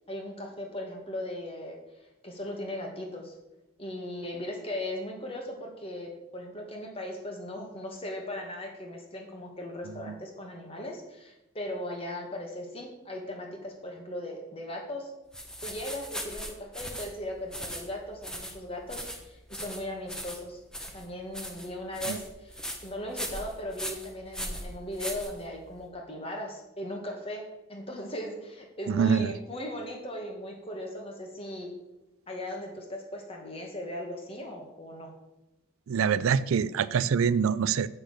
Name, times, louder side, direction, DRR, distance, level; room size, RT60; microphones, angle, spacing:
voice 1, 0.1-1.8 2.2-3.3 3.8-15.1 15.6-20.6 20.9-27.4 27.7-31.7 32.3-35.1, left 1 dB, 25° left, 1 dB, 1.7 m, -38 dB
sound 1, 15.3-25.8, equal, 5° left, 1.0 m, -39 dB
voice 2, 28.9-29.4 35.9-37.9, right 6 dB, 80° right, 17 dB, 0.4 m, -25 dB
7.9 x 6.5 x 6.5 m, 0.96 s
head